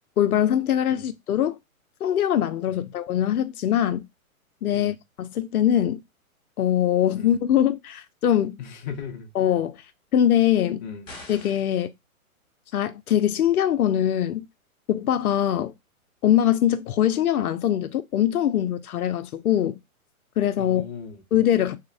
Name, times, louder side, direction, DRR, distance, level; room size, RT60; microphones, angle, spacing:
voice 1, 0.2-1.6 2.0-4.1 4.6-6.0 6.6-8.6 9.3-9.8 10.1-10.8 11.3-11.9 12.7-14.5 14.9-15.7 16.2-19.8 20.4-20.8 21.3-21.8, left 10 dB, 80° left, 0.5 m, -22 dB
voice 2, 8.6-9.3 10.8-11.1 20.6-21.2, left 6 dB, 35° left, 0.5 m, -37 dB
sound 1, 11.1-11.8, left 2 dB, 10° left, 1.0 m, -43 dB
2.8 x 2.1 x 2.3 m
hypercardioid pair, 130°, 43 cm